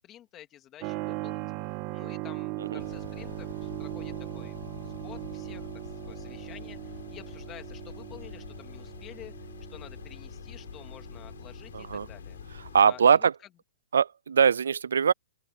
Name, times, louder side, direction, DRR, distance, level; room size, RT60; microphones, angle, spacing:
voice 1, 0.0-1.5 1.9-4.6 4.8-9.3 9.7-12.4 12.8-13.3, left 12 dB, 20° left, 2.3 m, -50 dB
Keyboard (musical), 0.8-13.2, right 21 dB, 30° right, 1.7 m, -40 dB
sound 1, 2.8-12.8, left 8 dB, 75° left, 5.6 m, -45 dB
voice 2, 11.7-12.1 12.7-13.3 13.9-15.1, right 7 dB, 90° right, 0.4 m, -22 dB
open air
hypercardioid pair, 165°, 0 cm